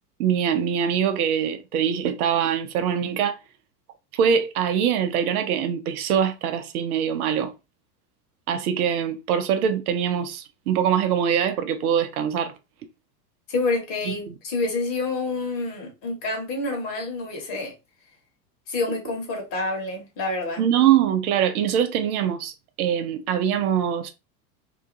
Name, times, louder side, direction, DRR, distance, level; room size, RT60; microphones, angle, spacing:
voice 1, 0.2-3.4 4.1-7.5 8.5-12.5 14.1-14.3 20.6-24.1, right 8 dB, 65° right, 0.6 m, -23 dB
voice 2, 13.5-17.7 18.7-20.6, left 3 dB, 40° left, 1.4 m, -28 dB
2.8 x 2.3 x 2.5 m
hypercardioid pair, 90°, 49 cm